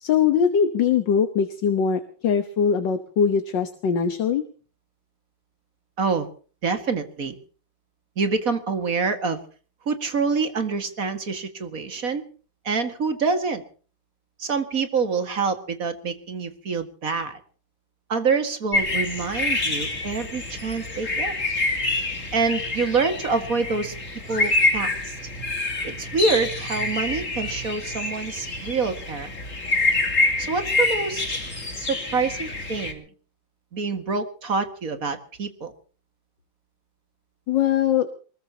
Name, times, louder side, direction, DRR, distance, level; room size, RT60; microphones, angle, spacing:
voice 1, 0.0-4.4 37.5-38.1, left 7 dB, 70° left, 8 dB, 1.9 m, -21 dB
voice 2, 6.6-7.4 8.2-9.4 9.9-12.2 12.6-13.6 14.4-17.4 18.1-21.3 22.3-23.9 24.3-25.2 25.8-29.3 30.4-31.4 31.8-33.1 33.7-35.7, right 4 dB, 45° right, 8 dB, 2.3 m, -26 dB
sound 1, 18.7-32.9, left 2 dB, 40° left, 3.1 m, -26 dB
23.5 x 21.0 x 2.9 m, 0.40 s
omnidirectional pair, 2.1 m